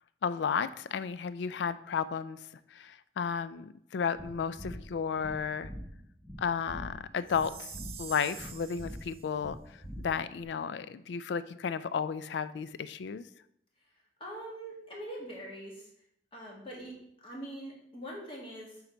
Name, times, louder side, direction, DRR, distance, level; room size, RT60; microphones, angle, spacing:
voice 1, 0.2-2.4 2.7-5.7 6.4-7.7 8.0-9.6 10.0-13.3, left 6 dB, 70° left, 14 dB, 0.3 m, -33 dB
sound 1, 4.2-10.4, equal, 10° left, 1.1 m, -45 dB
Chime, 7.3-9.3, right 8 dB, 30° right, 0.4 m, -46 dB
voice 2, 14.2-15.9 16.3-18.8, right 1 dB, 30° left, -3 dB, 1.7 m, -43 dB
7.0 x 3.9 x 4.4 m, 0.74 s
head